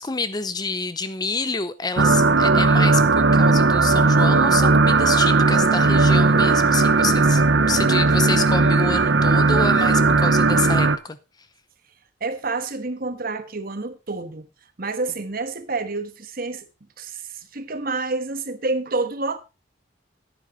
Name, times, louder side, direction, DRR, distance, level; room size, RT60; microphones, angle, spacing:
voice 1, 0.0-11.2, left 4 dB, 20° left, 0.6 m, -28 dB
sound 1, 2.0-11.0, right 3 dB, 65° right, 0.8 m, -17 dB
voice 2, 12.2-14.5 14.8-16.7 17.0-19.4, right 3 dB, 50° right, 1.3 m, -28 dB
11.0 x 9.4 x 4.0 m
head